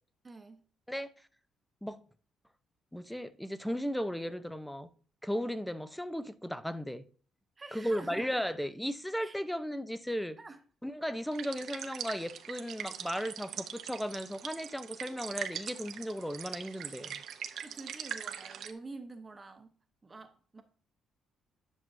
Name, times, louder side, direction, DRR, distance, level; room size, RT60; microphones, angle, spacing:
voice 1, 0.2-0.6 7.6-8.5 9.2-9.4 10.4-10.6 17.6-19.7 20.0-20.6, right 3 dB, 25° right, 1.0 m, -47 dB
voice 2, 2.9-4.9 5.2-7.0 7.7-10.4 10.8-17.2, equal, 5° left, 0.7 m, -36 dB
sound 1, 11.3-18.7, right 9 dB, 75° right, 0.8 m, -42 dB
10.5 x 6.1 x 2.7 m
cardioid pair, 90°, 0 cm